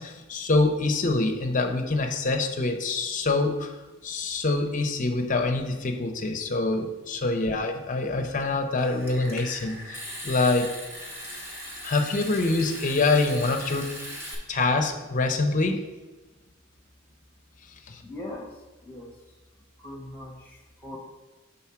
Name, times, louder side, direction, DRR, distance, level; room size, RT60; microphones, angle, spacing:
voice 1, 0.0-3.7 4.0-10.7 11.8-13.9 14.5-15.8 17.9-18.0, left 3 dB, 40° left, 5 dB, 0.6 m, -25 dB
Water tap faucet / Sink (filling or washing) / Trickle dribble, 8.8-14.3, equal, 10° right, 0.9 m, -39 dB
voice 2, 18.0-19.4 19.8-21.0, left 1 dB, 10° left, -1 dB, 1.3 m, -41 dB
4.8 x 3.9 x 5.7 m, 1.2 s
head